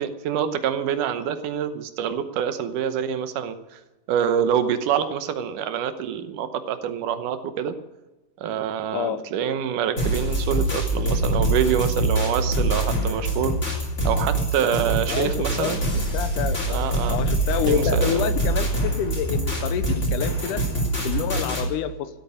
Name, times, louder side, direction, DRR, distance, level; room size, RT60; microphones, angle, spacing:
voice 1, 0.0-3.8 4.1-7.8 8.4-13.5 14.0-15.8 16.7-17.2 17.7-18.3, right 8 dB, 80° right, 10 dB, 2.5 m, -26 dB
sound 1, 10.0-21.7, right 1 dB, 20° left, 3.1 m, -24 dB
voice 2, 15.1-15.7 16.1-16.8 17.1-20.6 21.0-22.1, left 9 dB, 80° left, 11 dB, 2.4 m, -28 dB
16.0 x 8.6 x 9.8 m, 1.1 s
omnidirectional pair, 3.7 m